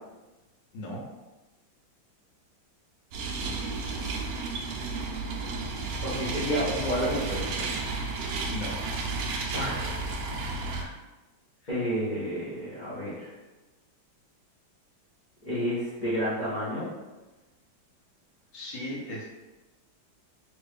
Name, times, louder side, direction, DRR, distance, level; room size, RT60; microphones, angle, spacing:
sound 1, 3.1-10.8, right 3 dB, 90° right, 0.7 m, -32 dB
voice 1, 6.0-7.7 9.5-10.0 10.3-10.6 11.7-13.3 15.4-16.9, equal, 45° left, -10 dB, 0.6 m, -31 dB
voice 2, 18.5-19.2, left 1 dB, 70° left, -3 dB, 1.5 m, -37 dB
3.1 x 3.0 x 3.3 m, 1.1 s
omnidirectional pair, 2.2 m